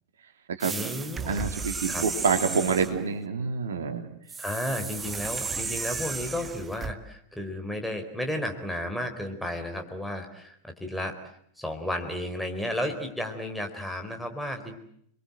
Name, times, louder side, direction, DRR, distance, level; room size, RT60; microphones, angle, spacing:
voice 1, 0.6-1.5 1.9-2.0 4.4-11.1 11.6-14.8, left 1 dB, ahead, 4 dB, 4.3 m, -33 dB
sound 1, 0.6-3.0 4.3-6.9, right 4 dB, 15° right, 1.5 m, -34 dB
voice 2, 1.3-4.1, right 5 dB, 65° right, 6 dB, 3.2 m, -27 dB
30.0 x 22.5 x 7.8 m, 0.70 s
figure-of-eight pair, 90°, 0 cm